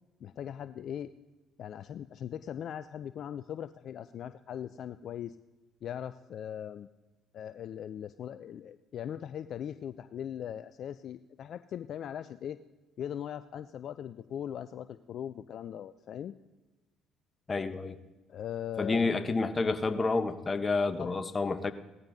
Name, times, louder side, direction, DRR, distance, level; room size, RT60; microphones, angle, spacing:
voice 1, 0.2-1.1 1.6-5.4 5.8-6.9 7.3-12.6 13.0-16.3 18.3-19.1 21.0-21.2, left 9 dB, 60° left, 13 dB, 0.4 m, -40 dB
voice 2, 17.5-18.0 18.8-21.7, left 3 dB, 30° left, 10 dB, 0.9 m, -29 dB
18.0 x 14.0 x 2.7 m, 1.1 s
hypercardioid pair, 60°, 0 cm